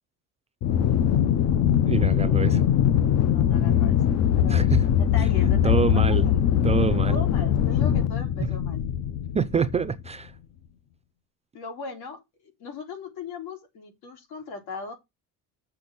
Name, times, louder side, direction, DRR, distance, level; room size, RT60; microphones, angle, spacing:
Aircraft, 0.6-10.1, left 10 dB, 45° left, 0.6 m, -22 dB
voice 1, 1.8-2.6 4.5-4.8 5.6-6.3 6.6-7.2 8.4-8.5 9.3-10.3, right 6 dB, 20° right, 0.4 m, -25 dB
voice 2, 3.3-4.0 4.3-4.7 5.0-6.3 7.1-8.9 11.5-12.2 12.6-14.9, left 5 dB, 80° left, 3.8 m, -38 dB
7.0 x 5.8 x 6.1 m
cardioid pair, 175°, 37 cm